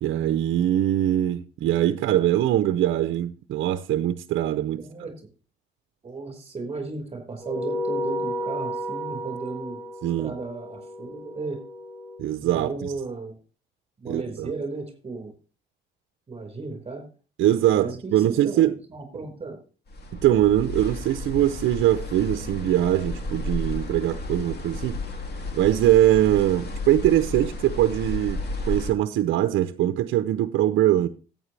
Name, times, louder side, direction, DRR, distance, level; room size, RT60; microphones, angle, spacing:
voice 1, 0.0-4.8 10.0-10.3 12.2-12.9 14.1-14.5 17.4-18.7 20.1-25.0 25.5-31.1, right 12 dB, 80° right, 0.7 m, -22 dB
voice 2, 4.8-5.2 6.0-9.8 10.2-11.6 12.4-13.4 14.0-15.3 16.3-17.0 17.7-19.6, right 3 dB, 30° right, 5.0 m, -35 dB
sound 1, 7.4-12.2, equal, 5° right, 2.9 m, -32 dB
sound 2, 19.9-28.9, left 2 dB, 55° left, 2.4 m, -33 dB
14.0 x 9.0 x 3.3 m
cardioid pair, 90°, 20 cm